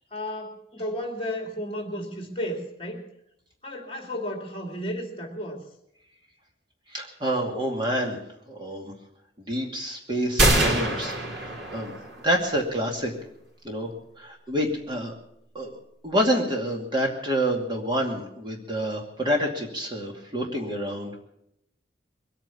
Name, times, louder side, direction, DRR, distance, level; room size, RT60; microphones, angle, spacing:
voice 1, 0.1-3.0 3.6-5.6, equal, 30° left, 4 dB, 2.4 m, -33 dB
voice 2, 6.9-8.2 8.5-8.9 9.4-12.0 12.2-13.1 13.6-13.9 14.2-15.1 15.5-15.7 16.0-21.1, equal, 25° right, 1 dB, 2.4 m, -28 dB
sound 1, 10.4-12.3, right 1 dB, 80° right, 3.9 m, -24 dB
22.0 x 9.1 x 7.2 m, 0.78 s
head